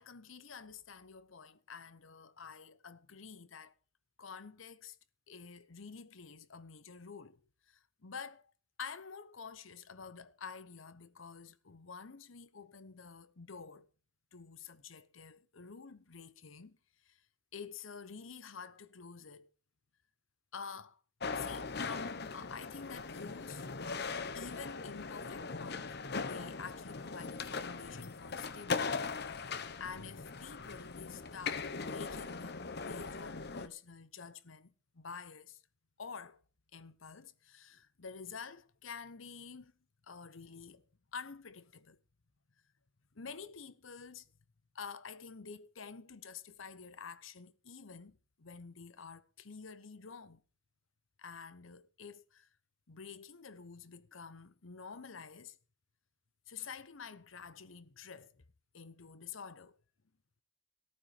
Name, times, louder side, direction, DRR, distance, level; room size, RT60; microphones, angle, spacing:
voice 1, 0.0-3.8 4.2-5.0 5.3-8.4 8.8-13.9 14.3-16.8 17.0-17.2 17.5-19.5 20.5-21.0 21.3-23.7 24.3-26.0 26.2-29.1 29.5-35.6 36.0-36.4 36.7-39.7 40.0-40.8 41.1-42.0 43.1-44.3 44.7-50.4 51.2-52.5 52.9-55.6 56.5-58.4 58.7-59.8, left 5 dB, 80° left, 1.0 m, -49 dB
sound 1, 21.2-33.7, left 4 dB, 55° left, 1.0 m, -40 dB
14.0 x 12.0 x 5.0 m
head